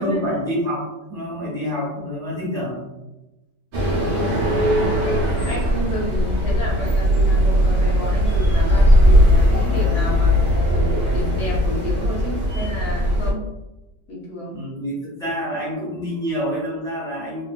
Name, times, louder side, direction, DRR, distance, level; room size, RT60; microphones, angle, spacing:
voice 1, 0.0-2.9 14.5-17.5, equal, 5° left, -7 dB, 0.7 m, -27 dB
sound 1, 3.7-13.3, equal, 80° right, 0.4 m, -18 dB
voice 2, 4.1-5.2 5.4-10.3 10.7-13.4 14.1-14.6, equal, 45° left, -7 dB, 0.8 m, -31 dB
3.6 x 2.3 x 2.3 m, 1.0 s
omnidirectional pair, 1.8 m